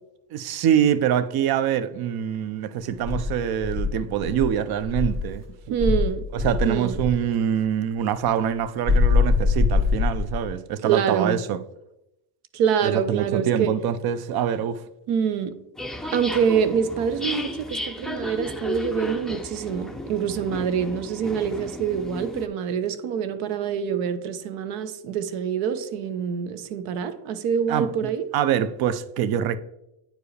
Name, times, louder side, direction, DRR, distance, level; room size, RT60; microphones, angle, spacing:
voice 1, 0.3-5.4 6.3-11.6 12.8-14.8 27.7-27.9 28.3-29.6, right 9 dB, 50° right, 0.6 m, -24 dB
Insect, 3.0-5.3 5.8-7.2 8.9-10.5, left 4 dB, 35° right, 1.3 m, -23 dB
voice 2, 5.7-6.3 6.6-7.0 10.8-11.4 12.5-13.8 15.1-15.6 16.1-28.3, right 7 dB, 75° right, 0.9 m, -25 dB
sound 1, 15.8-22.5, left 2 dB, ahead, 0.4 m, -34 dB
9.0 x 4.7 x 3.3 m
cardioid pair, 110°, 49 cm